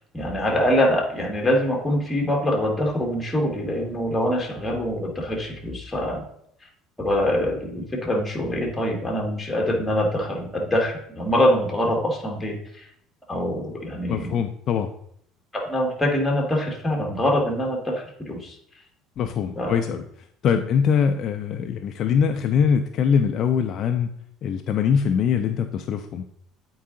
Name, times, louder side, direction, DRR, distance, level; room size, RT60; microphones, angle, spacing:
voice 1, 0.1-6.2 7.0-12.9 13.3-14.4 15.5-18.5 19.6-19.7, left 1 dB, 10° left, 0 dB, 1.7 m, -24 dB
voice 2, 14.1-14.9 19.2-20.0 20.4-24.1 24.4-26.3, left 7 dB, 45° left, 6 dB, 0.4 m, -22 dB
8.2 x 4.7 x 3.7 m, 0.68 s
cardioid pair, 150°, 0 cm